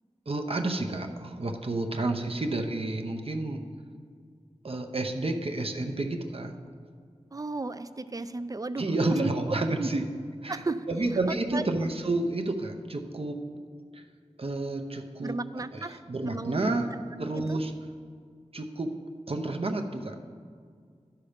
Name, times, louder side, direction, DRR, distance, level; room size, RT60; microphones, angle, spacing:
voice 1, 0.3-3.6 4.6-6.5 8.8-10.0 10.4-10.6 10.9-13.4 13.9-14.0 14.4-15.4 15.7-16.9 17.2-17.7 18.5-19.0 19.3-20.2, right 2 dB, 55° right, 4 dB, 0.7 m, -30 dB
voice 2, 7.3-9.3 9.7-9.9 10.5-10.9 11.5-11.7 15.2-16.7 17.2-17.6, right 3 dB, 30° right, 13 dB, 0.4 m, -35 dB
11.5 x 5.7 x 5.1 m, 2.1 s
wide cardioid pair, 65°, 12 cm